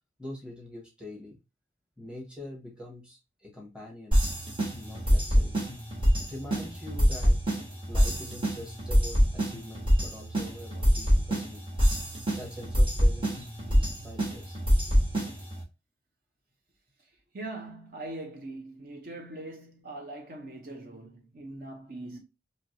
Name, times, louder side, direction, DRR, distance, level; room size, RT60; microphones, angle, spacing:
voice 1, 0.2-1.4 2.0-4.2 4.8-5.6 6.2-7.4 7.9-11.7 12.4-14.6, left 1 dB, 5° right, 0.9 m, -44 dB
sound 1, 4.1-15.6, equal, 30° right, 1.1 m, -26 dB
voice 2, 17.3-22.2, right 2 dB, 50° right, 0.6 m, -41 dB
3.1 x 2.8 x 2.6 m
head